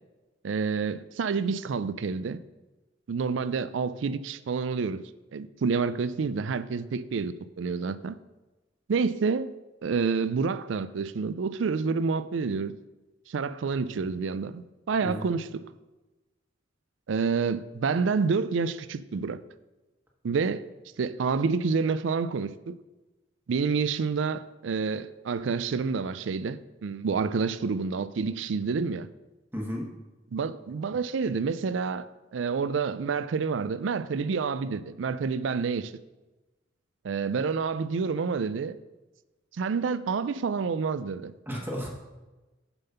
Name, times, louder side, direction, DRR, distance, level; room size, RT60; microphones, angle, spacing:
voice 1, 0.4-2.4 3.1-5.0 5.3-8.2 8.9-9.5 9.8-12.7 13.3-15.6 17.1-19.4 20.2-20.6 21.0-22.8 23.5-29.1 30.3-32.0 32.3-35.9 37.0-38.8 39.6-41.3, right 5 dB, 70° right, 0.4 m, -28 dB
voice 2, 15.0-15.4 29.5-29.9 41.5-41.9, equal, 10° right, 1.2 m, -33 dB
7.0 x 5.5 x 5.6 m
head